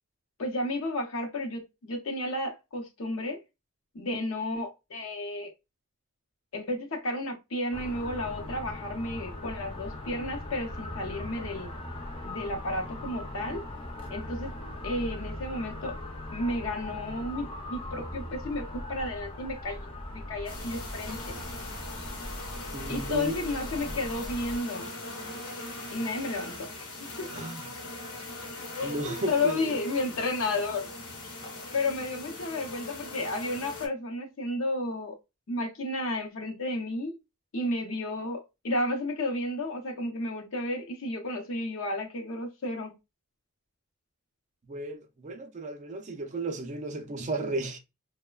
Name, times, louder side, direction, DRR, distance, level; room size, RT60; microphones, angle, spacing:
voice 1, 0.4-3.4 3.9-5.5 6.5-11.7 12.2-13.6 14.1-14.5 14.8-16.0 16.3-21.4 22.9-24.9 25.9-26.9 27.2-27.3 28.8-30.9 31.7-35.2 35.5-37.2 37.5-42.9, left 2 dB, 65° left, 0.6 m, -32 dB
sound 1, 7.7-24.6, left 1 dB, 25° left, 0.6 m, -39 dB
sound 2, 20.5-33.9, left 2 dB, 90° left, 0.9 m, -41 dB
voice 2, 22.7-23.4 27.3-27.7 28.8-29.8 44.6-47.8, right 2 dB, 35° right, 0.4 m, -34 dB
3.1 x 2.1 x 2.2 m
head